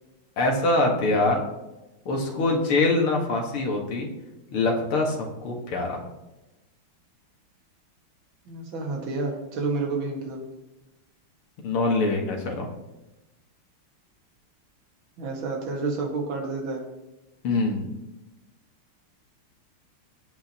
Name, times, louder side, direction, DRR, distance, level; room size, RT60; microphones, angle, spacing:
voice 1, 0.4-1.4 2.1-4.1 4.5-6.0 11.6-12.7 17.4-17.9, left 2 dB, 80° left, 1 dB, 2.6 m, -24 dB
voice 2, 8.5-10.4 15.2-16.8, right 3 dB, 65° right, 0 dB, 2.6 m, -30 dB
19.0 x 8.3 x 2.9 m, 1.0 s
omnidirectional pair, 2.4 m